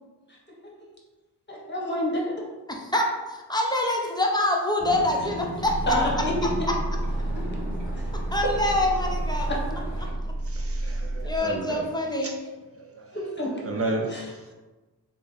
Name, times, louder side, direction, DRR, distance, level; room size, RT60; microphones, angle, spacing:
voice 1, 1.5-2.3 5.8-6.4 7.9-8.1 8.4-8.5 9.5-9.6 13.1-13.5 14.1-14.3, equal, 25° left, -2 dB, 1.0 m, -28 dB
voice 2, 2.9-5.8 8.3-9.5 11.2-12.3, left 1 dB, 10° left, 0 dB, 0.6 m, -25 dB
sound 1, 4.8-10.1, equal, 5° right, 1.2 m, -37 dB
sound 2, 5.6-11.4, right 1 dB, 85° right, 0.6 m, -30 dB
voice 3, 10.5-11.9 12.2-12.3 12.7-13.1 13.7-14.2, right 2 dB, 35° right, 1 dB, 0.5 m, -32 dB
3.3 x 2.0 x 3.9 m, 1.2 s
cardioid pair, 50°, 41 cm